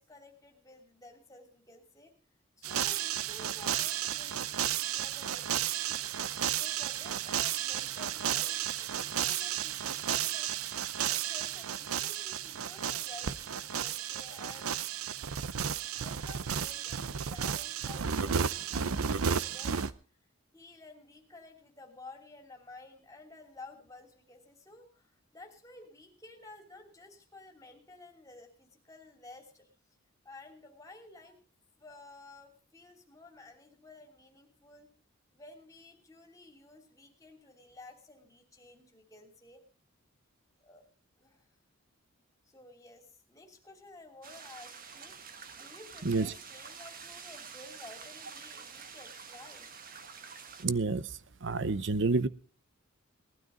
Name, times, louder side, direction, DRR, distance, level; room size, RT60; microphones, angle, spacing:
voice 1, 0.0-2.1 2.6-6.1 6.5-10.5 11.0-14.7 15.9-19.8 20.5-29.7 30.2-31.4 31.8-34.9 35.3-39.6 40.6-40.9 41.2-41.5 42.4-45.1 45.6-49.7, left 2 dB, 15° left, 3 dB, 3.0 m, -53 dB
sound 1, 2.6-19.9, right 8 dB, 90° right, 0.7 m, -33 dB
sound 2, 44.2-50.6, right 6 dB, 40° right, 1.4 m, -48 dB
voice 2, 50.6-51.1 51.4-52.3, right 3 dB, 60° right, 17 dB, 0.8 m, -28 dB
19.0 x 12.5 x 3.8 m, 0.37 s
head